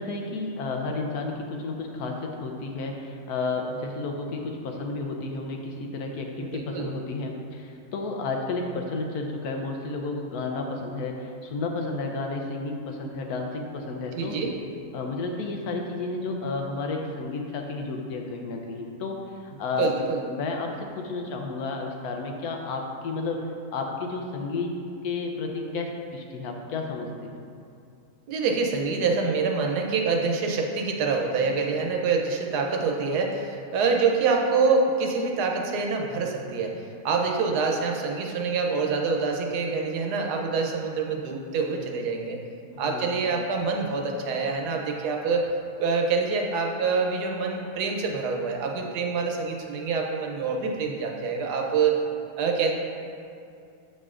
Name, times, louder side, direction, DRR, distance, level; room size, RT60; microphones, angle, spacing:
voice 1, 0.0-14.4 14.9-19.2 19.4-19.9 20.3-24.8 25.0-27.4 42.8-43.1, left 3 dB, 75° left, 2 dB, 1.2 m, -32 dB
voice 2, 6.4-6.9 14.1-14.5 19.8-20.2 28.3-42.4 42.8-45.5 45.8-52.0 52.4-52.7, right 4 dB, 90° right, 1 dB, 1.3 m, -26 dB
7.8 x 6.3 x 2.4 m, 2.4 s
omnidirectional pair, 1.6 m